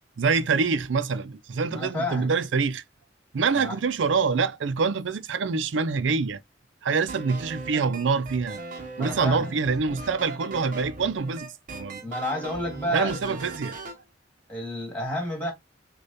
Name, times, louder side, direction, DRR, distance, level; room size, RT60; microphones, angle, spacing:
voice 1, 0.2-2.8 3.3-6.4 6.8-8.6 9.0-12.0 12.9-13.7, right 5 dB, 85° right, 0.5 m, -25 dB
voice 2, 1.7-2.3 3.5-3.8 9.0-9.6 12.0-13.4 14.5-15.5, left 1 dB, 10° left, 2.1 m, -31 dB
sound 1, 7.1-14.0, right 3 dB, 45° right, 0.8 m, -39 dB
6.5 x 2.3 x 2.7 m
head